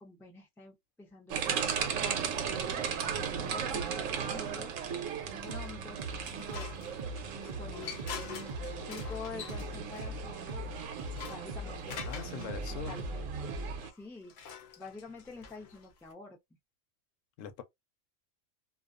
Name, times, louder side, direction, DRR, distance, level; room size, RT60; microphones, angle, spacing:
voice 1, 0.0-6.6 7.6-8.0 8.9-10.6 11.3-12.1 12.7-13.4 13.8-14.3 14.8-16.4, left 3 dB, 5° left, 0.4 m, -48 dB
sound 1, 1.3-13.9, right 7 dB, 80° right, 1.0 m, -37 dB
sound 2, 5.2-13.8, right 1 dB, 50° right, 0.5 m, -41 dB
sound 3, 6.0-12.5 13.8-16.1, left 7 dB, 60° left, 0.5 m, -46 dB
voice 2, 12.0-13.0 17.4-17.6, left 8 dB, 80° left, 0.9 m, -41 dB
2.3 x 2.3 x 2.4 m
omnidirectional pair, 1.3 m